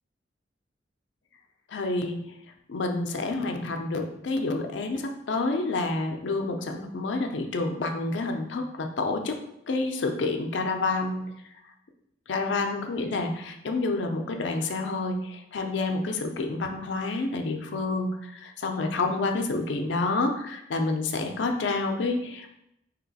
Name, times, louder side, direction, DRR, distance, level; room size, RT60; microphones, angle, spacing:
voice 1, 1.7-2.2 2.7-9.4 9.7-11.3 12.3-22.6, left 3 dB, 75° left, 4 dB, 0.5 m, -28 dB
3.0 x 2.8 x 4.0 m, 0.80 s
head